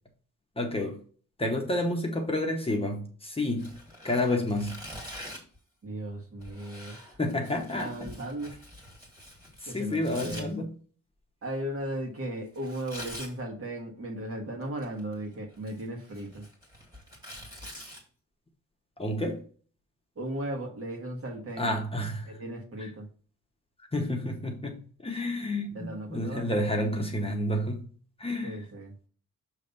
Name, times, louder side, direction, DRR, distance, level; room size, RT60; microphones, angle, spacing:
voice 1, 0.6-1.0 1.4-3.7 4.0-4.7 7.2-8.1 9.6-10.7 19.0-19.4 21.6-22.4 22.8-22.9 23.9-27.9 28.2-28.6, left 1 dB, 20° left, 0.9 m, -30 dB
Tearing, 3.5-5.6 6.4-10.4 12.5-13.3 14.6-15.1 15.5-18.0, equal, 10° right, 2.1 m, -45 dB
voice 2, 5.8-6.9 7.7-8.5 9.7-10.5 11.4-16.4 20.2-21.7 22.3-23.0 25.7-26.5 28.4-28.9, right 1 dB, 45° right, 1.6 m, -36 dB
6.8 x 3.3 x 5.3 m
wide cardioid pair, 160°, 32 cm